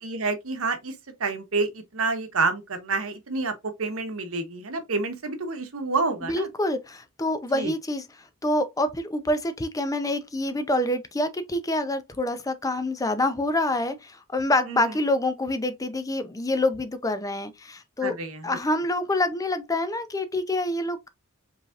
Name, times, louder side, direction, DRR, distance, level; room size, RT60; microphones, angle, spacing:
voice 1, 0.0-6.5 7.5-7.7 14.7-15.0 18.0-18.6, right 3 dB, 70° right, 1.0 m, -29 dB
voice 2, 6.2-8.0 8.4-18.1 18.4-21.1, left 1 dB, 15° left, 0.5 m, -26 dB
5.0 x 3.3 x 2.4 m
head